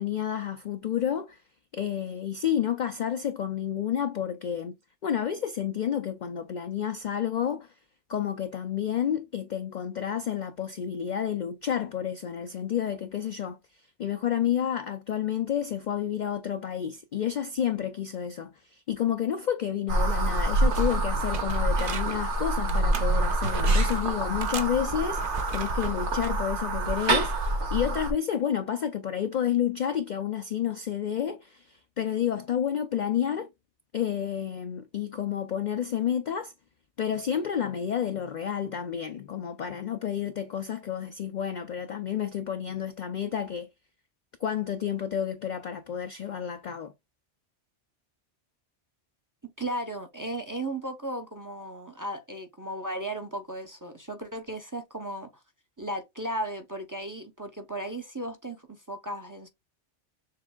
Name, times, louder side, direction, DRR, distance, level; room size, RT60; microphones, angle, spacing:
voice 1, 0.0-1.4 1.7-4.7 5.0-7.7 8.1-13.6 14.0-27.3 27.7-33.5 33.9-36.5 37.0-43.7 44.4-46.9, left 9 dB, 60° left, 0.5 m, -30 dB
sound 1, 19.9-28.1, right 2 dB, 70° right, 1.5 m, -26 dB
sound 2, 20.7-22.2 22.7-24.0 24.4-26.4 26.9-27.1, right 5 dB, 55° right, 0.8 m, -38 dB
voice 2, 49.4-55.3 55.8-59.5, right 1 dB, 20° right, 0.6 m, -35 dB
6.7 x 3.4 x 2.2 m
omnidirectional pair, 1.2 m